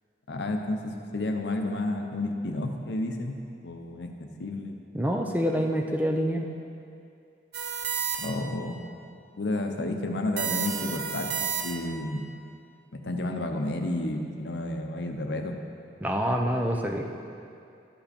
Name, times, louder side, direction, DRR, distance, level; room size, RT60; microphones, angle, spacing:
voice 1, 0.3-3.4 3.6-4.8 8.2-8.8 9.4-12.2 12.9-15.6, left 2 dB, 75° left, 4 dB, 0.7 m, -31 dB
voice 2, 4.9-6.5 16.0-17.1, equal, 10° right, 2 dB, 0.5 m, -26 dB
sound 1, 7.5-8.6 10.4-12.0, right 7 dB, 60° right, 0.6 m, -31 dB
12.0 x 5.6 x 4.3 m, 2.5 s
head